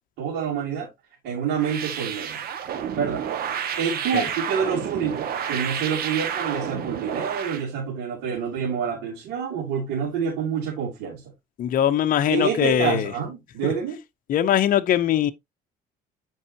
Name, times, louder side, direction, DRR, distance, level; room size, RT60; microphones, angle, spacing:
voice 1, 0.2-0.9 1.2-2.4 2.9-3.2 3.8-11.2 12.3-14.0, right 7 dB, 90° right, 3.1 m, -27 dB
sound 1, 1.6-7.6, right 8 dB, 65° right, 1.7 m, -30 dB
voice 2, 11.6-13.1 13.6-13.7 14.3-15.3, left 10 dB, 55° left, 0.8 m, -21 dB
8.5 x 5.4 x 2.9 m
cardioid pair, 110°, 17 cm